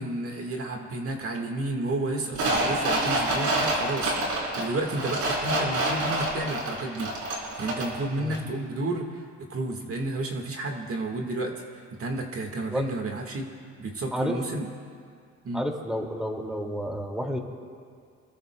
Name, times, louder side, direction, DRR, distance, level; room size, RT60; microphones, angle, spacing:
voice 1, 0.0-4.2 4.6-13.5 13.8-14.7 15.4-15.6, right 2 dB, 50° right, 2 dB, 1.8 m, -31 dB
sound 1, 2.3-8.0 8.3-8.4, right 1 dB, 75° right, 4.2 m, -27 dB
voice 2, 15.5-17.4, equal, ahead, 1 dB, 2.4 m, -30 dB
28.0 x 20.5 x 2.3 m, 2.2 s
cardioid pair, 90°, 30 cm